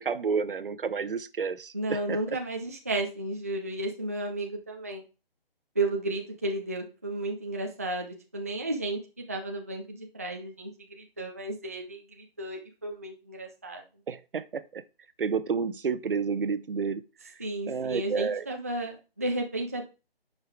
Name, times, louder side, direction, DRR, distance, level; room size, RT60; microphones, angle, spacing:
voice 1, 0.0-2.2 14.1-14.8 15.2-17.0 17.7-18.4, right 5 dB, 60° right, 0.9 m, -30 dB
voice 2, 1.7-5.0 5.8-13.8 17.4-19.8, right 2 dB, 15° right, 0.4 m, -33 dB
9.8 x 5.6 x 4.5 m
hypercardioid pair, 160°, 30 cm